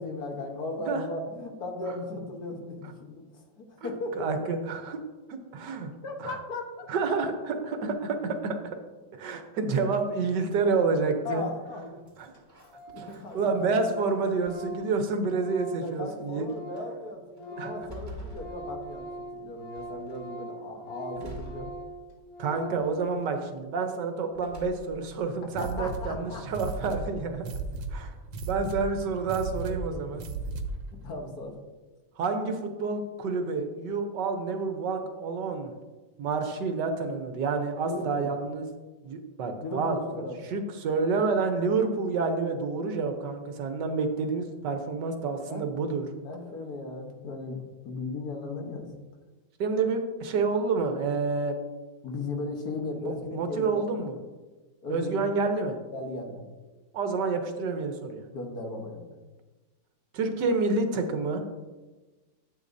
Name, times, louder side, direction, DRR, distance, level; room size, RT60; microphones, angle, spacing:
voice 1, 0.0-4.3 6.0-6.9 11.2-12.0 12.9-13.7 15.8-21.7 25.6-26.4 28.6-28.7 31.0-31.6 37.8-38.3 39.6-40.4 45.5-45.7 46.2-48.9 52.0-54.0 54.8-55.2 55.9-56.4 58.3-59.1, left 2 dB, 60° left, 2 dB, 1.6 m, -37 dB
voice 2, 4.2-5.0 5.5-5.9 6.2-6.4 6.9-8.5 9.2-11.4 12.2-12.3 13.0-13.1 13.3-16.5 17.6-17.7 22.4-27.4 27.9-28.1 28.4-30.2 32.2-35.7 36.2-38.7 39.0-40.0 40.5-46.1 49.6-51.6 53.3-54.2 54.9-55.8 56.9-58.2 60.1-61.4, right 4 dB, 70° right, 6 dB, 1.5 m, -28 dB
Organ, 12.0-12.1 12.3-12.4 12.7-13.1 13.4-17.0 17.2-22.9, right 1 dB, 85° left, 2.4 m, -42 dB
sound 1, 12.1-14.0 14.4-15.2 15.9-16.0 16.5-16.8 17.4-19.3 19.8-20.3 21.1-22.3 22.8-23.4 24.3-25.1, equal, 10° right, 2.1 m, -47 dB
sound 2, 25.5-30.9, right 3 dB, 90° right, 1.5 m, -36 dB
11.5 x 8.1 x 2.6 m, 1.2 s
omnidirectional pair, 2.0 m